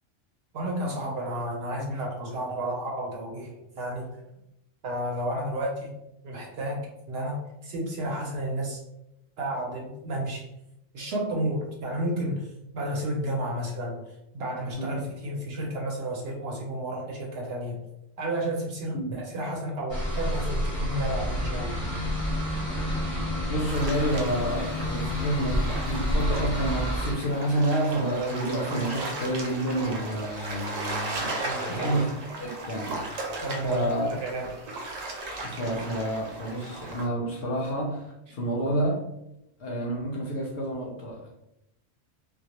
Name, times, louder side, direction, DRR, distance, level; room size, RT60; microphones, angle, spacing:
voice 1, 0.5-4.0 4.8-5.9 6.2-8.8 9.4-10.5 10.9-14.0 14.3-17.7 18.2-21.8 31.4-32.0 33.4-34.7, right 1 dB, 65° right, -1 dB, 0.7 m, -32 dB
voice 2, 14.7-15.1 18.9-19.2 23.5-31.3 31.7-32.1 32.4-33.0 33.6-34.1 35.4-39.0 39.6-41.3, right 1 dB, 60° left, -2 dB, 0.6 m, -29 dB
sound 1, 19.9-27.1, equal, 25° left, 0.7 m, -29 dB
sound 2, 23.7-37.1, right 2 dB, 85° right, 0.3 m, -36 dB
2.2 x 2.0 x 2.8 m, 0.86 s
omnidirectional pair, 1.3 m